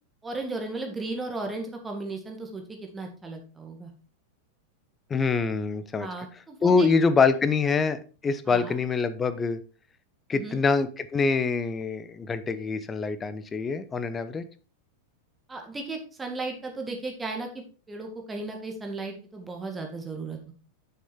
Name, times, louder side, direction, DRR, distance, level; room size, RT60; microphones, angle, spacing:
voice 1, 0.2-3.9 6.0-6.9 8.5-8.8 10.3-10.6 15.5-20.5, right 3 dB, 15° right, 3 dB, 1.8 m, -35 dB
voice 2, 5.1-6.1 6.6-9.6 10.3-14.4, left 4 dB, 20° left, 12 dB, 0.8 m, -25 dB
7.0 x 6.4 x 4.3 m, 0.35 s
figure-of-eight pair, 90°, 0 cm